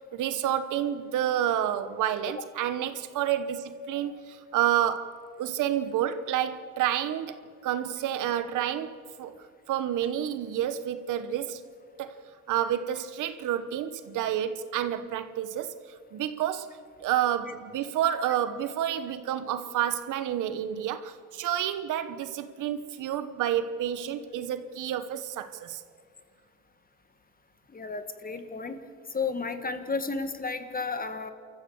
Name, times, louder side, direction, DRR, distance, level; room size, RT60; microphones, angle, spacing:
voice 1, 0.1-9.3 9.7-11.6 12.0-12.2 12.5-15.7 16.1-25.8, right 10 dB, 85° right, 12 dB, 1.1 m, -29 dB
voice 2, 27.7-28.8 29.1-31.3, left 4 dB, 30° left, 9 dB, 1.7 m, -32 dB
28.0 x 14.0 x 7.1 m, 2.2 s
cardioid pair, 90°, 30 cm